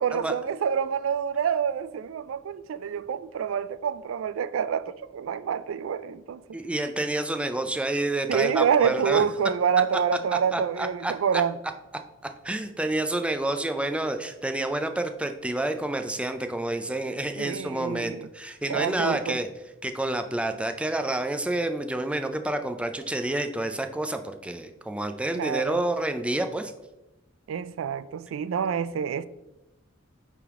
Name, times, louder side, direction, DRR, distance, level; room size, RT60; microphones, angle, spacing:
voice 1, 0.0-6.4 8.3-11.6 17.4-18.3 18.7-19.4 25.3-25.8 27.5-29.3, right 7 dB, 80° right, 0.3 m, -27 dB
voice 2, 6.5-9.3 10.5-11.1 12.4-19.5 19.8-26.7, right 1 dB, 5° right, 0.4 m, -29 dB
9.1 x 3.5 x 3.6 m
head